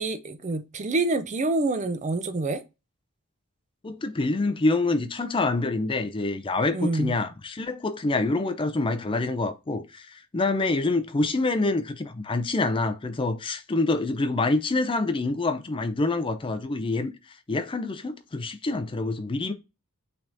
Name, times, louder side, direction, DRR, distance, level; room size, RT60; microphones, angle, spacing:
voice 1, 0.0-2.6 6.7-7.2, right 2 dB, 30° right, 0.5 m, -27 dB
voice 2, 3.8-17.1 17.5-19.5, left 2 dB, 25° left, 0.5 m, -26 dB
5.9 x 3.4 x 2.6 m
head